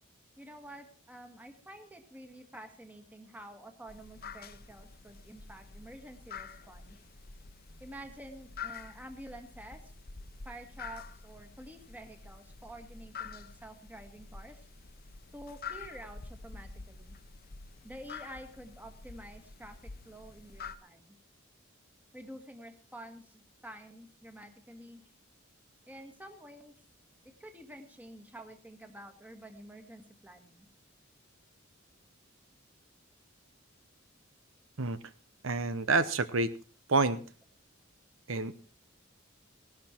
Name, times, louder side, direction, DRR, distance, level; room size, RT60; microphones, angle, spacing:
voice 1, 0.4-7.0 7.8-9.8 10.5-14.7 15.3-17.2 17.8-21.2 22.1-25.0 25.9-26.8 27.2-30.7, right 1 dB, 10° right, 7 dB, 1.8 m, -49 dB
sound 1, 3.9-20.8, left 5 dB, 45° left, 0.9 m, -47 dB
voice 2, 35.4-36.5 36.9-37.2 38.3-38.5, right 3 dB, 70° right, 13 dB, 0.9 m, -28 dB
17.5 x 12.0 x 4.5 m, 0.38 s
head